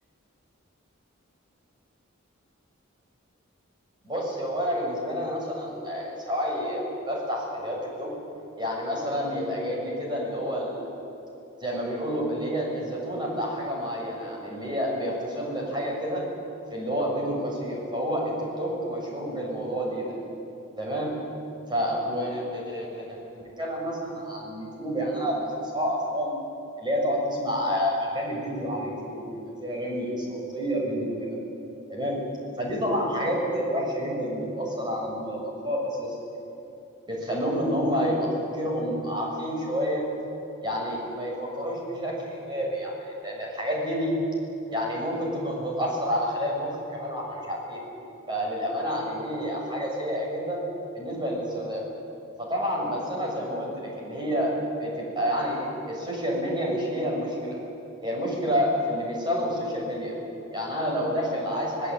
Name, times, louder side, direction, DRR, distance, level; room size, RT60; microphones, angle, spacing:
voice 1, 4.0-8.1 8.6-10.9 11.6-16.3 16.7-20.2 20.8-21.2 21.7-26.3 26.8-31.3 31.9-32.2 32.6-36.2 37.1-40.0 40.6-42.9 43.2-44.2 44.7-47.8 48.3-50.6 50.9-51.8 52.4-57.6 58.0-60.2 60.5-61.9, equal, 20° right, -2 dB, 7.3 m, -29 dB
26.0 x 20.0 x 9.1 m, 2.9 s
head